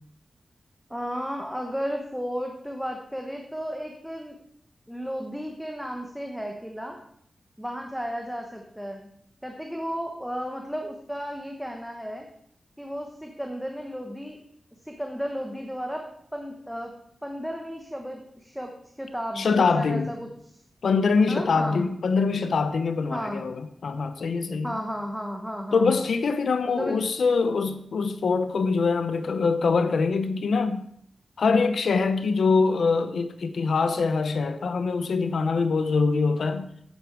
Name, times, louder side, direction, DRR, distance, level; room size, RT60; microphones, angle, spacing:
voice 1, 0.9-4.4 4.9-7.0 7.6-9.1 9.4-12.3 12.8-14.4 14.8-16.0 16.3-16.9 17.2-18.7 19.0-20.6 21.3-21.8 23.1-23.4 24.6-26.0 26.7-27.0, equal, ahead, 2 dB, 1.0 m, -33 dB
voice 2, 19.4-20.1 20.8-24.7 25.7-30.8 31.4-36.7, left 4 dB, 80° left, 10 dB, 0.8 m, -24 dB
10.0 x 9.4 x 4.7 m, 0.68 s
wide cardioid pair, 150°, 0 cm